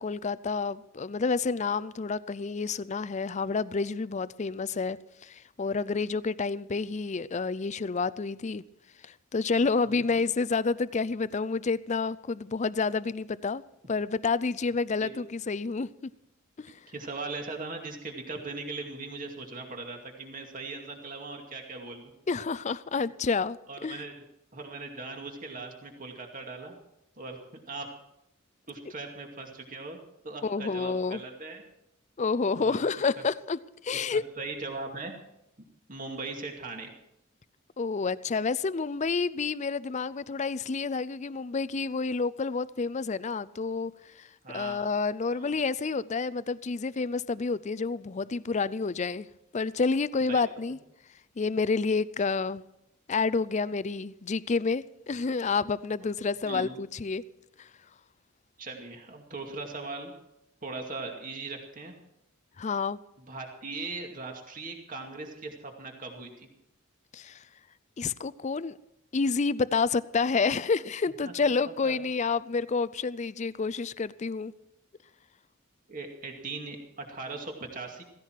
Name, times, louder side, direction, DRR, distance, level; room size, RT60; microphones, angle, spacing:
voice 1, 0.0-8.6 9.0-13.6 13.9-16.1 16.6-16.8 22.3-24.0 30.4-31.2 32.2-33.6 33.8-34.2 37.8-43.9 44.2-44.3 44.5-49.3 49.5-50.8 51.4-52.6 53.1-57.2 57.6-57.7 62.6-63.0 67.1-67.4 68.0-68.8 69.1-74.5, left 4 dB, 35° left, 0.4 m, -29 dB
voice 2, 9.8-10.2 15.0-15.1 16.9-22.1 23.7-24.1 24.5-26.8 27.2-27.9 28.7-30.0 30.2-31.6 32.5-33.2 34.1-35.1 35.9-36.9 44.4-44.9 45.3-45.5 50.3-50.4 56.4-56.8 58.6-60.1 60.6-61.9 63.3-66.5 71.7-72.0 75.9-78.0, right 3 dB, 40° right, 2.3 m, -39 dB
16.5 x 16.0 x 4.6 m
head